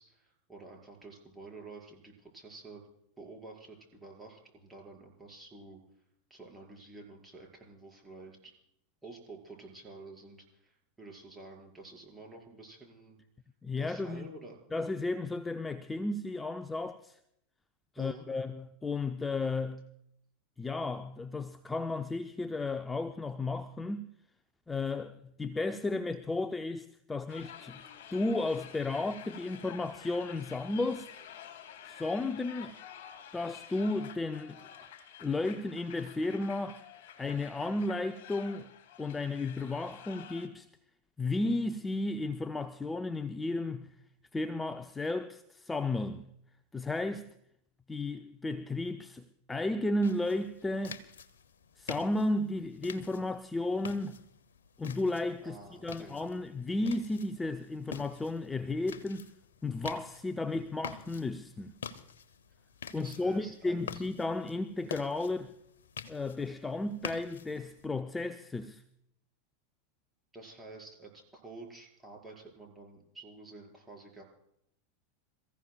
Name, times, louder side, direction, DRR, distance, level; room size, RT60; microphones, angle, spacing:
voice 1, 0.0-2.9 3.2-5.8 6.3-8.5 9.0-13.2 13.8-14.6 18.0-18.3 55.4-56.2 63.0-64.0 70.3-74.2, right 3 dB, 10° right, 5.3 m, -50 dB
voice 2, 13.6-14.2 14.7-17.2 17.9-19.8 20.6-24.1 24.7-27.8 28.1-31.1 31.8-32.8 33.3-34.6 35.2-36.8 37.2-38.7 39.0-40.7 41.2-43.9 44.3-46.3 46.7-47.3 47.9-51.0 51.8-54.2 54.8-55.6 55.8-59.2 59.6-61.7 62.9-65.5 66.1-68.8, left 2 dB, 15° left, 0.6 m, -33 dB
sound 1, 27.3-40.5, left 9 dB, 65° left, 1.9 m, -50 dB
sound 2, 50.0-67.9, left 7 dB, 80° left, 0.9 m, -47 dB
27.5 x 15.0 x 2.4 m
hypercardioid pair, 95°, 0 cm